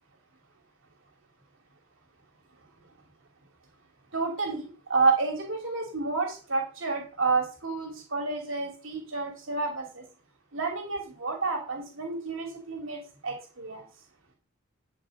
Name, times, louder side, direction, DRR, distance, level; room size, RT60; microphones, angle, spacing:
voice 1, 4.1-10.0 10.5-13.8, right 4 dB, 65° right, 2 dB, 2.8 m, -30 dB
11.5 x 5.4 x 7.8 m, 0.39 s
head